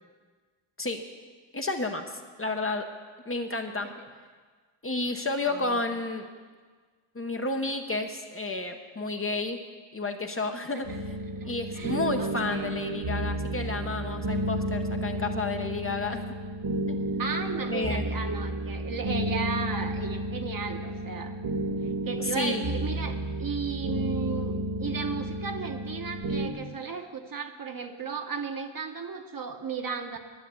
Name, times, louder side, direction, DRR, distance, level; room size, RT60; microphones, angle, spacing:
voice 1, 1.5-2.9 3.3-3.9 4.8-6.3 7.1-9.6 9.9-10.9 11.4-16.2 16.9-17.1 17.7-18.0 22.4-22.6, left 3 dB, 25° left, 5 dB, 0.8 m, -31 dB
voice 2, 5.5-5.8 10.7-11.0 11.3-12.7 17.2-21.3 22.0-30.2, right 5 dB, 40° right, 5 dB, 1.1 m, -35 dB
sound 1, 10.8-26.5, right 1 dB, 60° right, 1.7 m, -32 dB
11.0 x 9.1 x 8.3 m, 1.5 s
wide cardioid pair, 135°, 50 cm